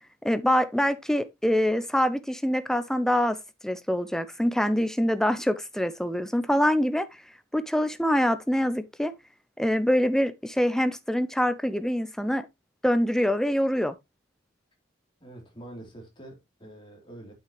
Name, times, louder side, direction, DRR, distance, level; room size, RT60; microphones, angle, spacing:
voice 1, 0.2-3.4 3.6-7.1 7.5-9.1 9.6-12.5 12.8-14.0, equal, 5° left, 0.6 m, -25 dB
voice 2, 15.2-17.3, right 1 dB, 25° left, 3.4 m, -45 dB
8.8 x 6.2 x 3.1 m
head